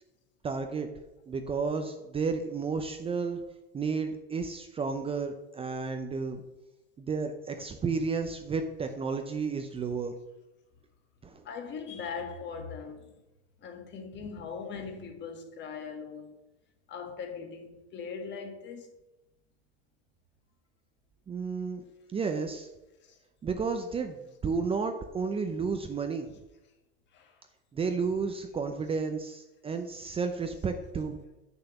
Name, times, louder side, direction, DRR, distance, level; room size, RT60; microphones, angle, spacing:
voice 1, 0.4-0.9 1.3-3.4 3.7-6.4 7.0-10.1 11.2-11.4 21.3-21.8 22.1-22.7 23.4-26.3 27.7-31.2, right 5 dB, 20° right, 0.7 m, -32 dB
voice 2, 11.4-13.1 13.6-16.3 16.9-18.9 23.0-23.2 27.1-27.4, left 5 dB, 35° left, 1.6 m, -40 dB
6.8 x 6.0 x 7.0 m
supercardioid pair, 115°, 31 cm